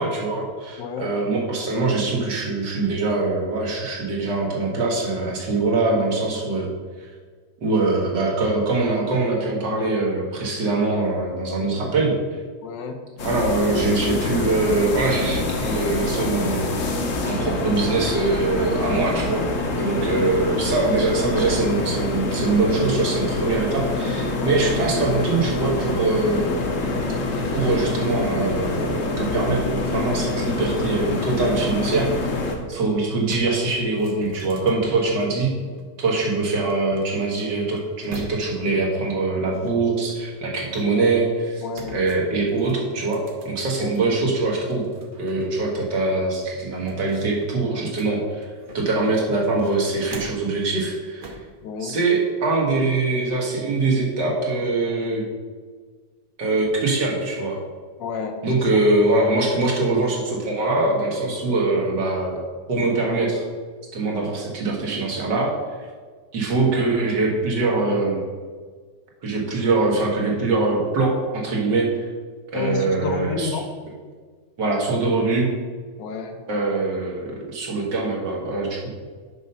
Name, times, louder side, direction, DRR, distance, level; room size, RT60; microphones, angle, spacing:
voice 1, 0.0-6.7 7.0-7.1 7.6-12.2 13.2-16.6 17.3-19.4 19.8-26.5 27.5-32.1 32.7-35.5 36.0-41.6 41.9-44.9 45.2-51.4 51.8-55.2 56.4-57.6 58.4-62.4 62.7-63.4 63.9-65.5 66.3-68.2 69.2-71.9 72.5-73.5 74.6-75.5 76.5-78.9, right 3 dB, 80° right, -2 dB, 2.2 m, -23 dB
voice 2, 0.8-1.2 11.6-11.9 12.6-13.1 20.0-20.3 24.3-24.7 41.6-42.0 43.8-44.0 51.6-52.0 58.0-58.8 72.5-73.7 76.0-76.4, left 5 dB, 85° left, 5 dB, 1.4 m, -31 dB
sound 1, 13.2-32.6, left 2 dB, 55° left, 1.1 m, -26 dB
sound 2, 21.3-27.9, left 1 dB, 30° left, 0.9 m, -42 dB
Old Fridge, 32.7-32.8 33.1-35.8 36.7-38.7 39.5-41.1 41.7-44.1 44.5-45.6 45.9-46.0 46.4-49.0 49.4-50.6 51.2-51.5, right 1 dB, 40° right, 0.8 m, -42 dB
6.1 x 5.4 x 5.5 m, 1.5 s
omnidirectional pair, 1.9 m